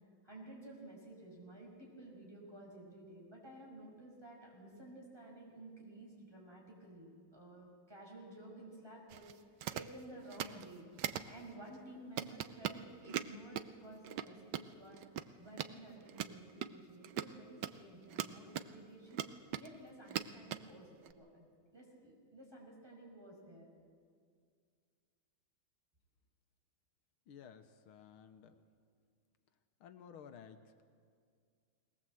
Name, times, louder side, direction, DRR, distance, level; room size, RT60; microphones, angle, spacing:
voice 1, 0.2-10.8 11.2-19.2 19.6-21.5 21.7-23.7, right 1 dB, 10° right, -3 dB, 5.6 m, -53 dB
sound 1, 9.1-9.3 9.6-9.9 10.3-10.6 11.0-11.3 11.7-11.8 12.2-13.7 14.0-14.6 14.9-15.3 15.5-15.7 16.0-18.7 19.1-19.8 20.1-20.6 21.0-21.1, right 10 dB, 65° right, 1.1 m, -40 dB
voice 2, 27.3-28.5 29.8-30.8, left 7 dB, 85° left, 8 dB, 1.8 m, -55 dB
20.5 x 19.0 x 7.7 m, 2.1 s
omnidirectional pair, 2.3 m